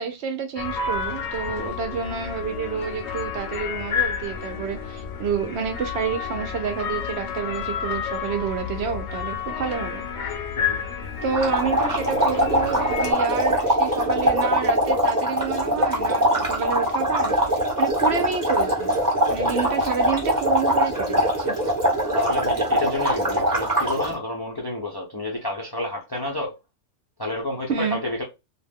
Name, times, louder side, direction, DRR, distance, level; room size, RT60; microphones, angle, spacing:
voice 1, 0.0-10.0 11.2-18.9 19.3-21.6 27.7-28.0, right 6 dB, 65° right, 0.8 m, -29 dB
sound 1, 0.6-13.1, left 6 dB, 70° left, 0.8 m, -30 dB
sound 2, 11.3-24.1, equal, 15° right, 1.0 m, -22 dB
voice 2, 22.1-26.5 27.2-28.2, left 2 dB, 30° left, 0.4 m, -30 dB
2.5 x 2.2 x 3.4 m
omnidirectional pair, 1.3 m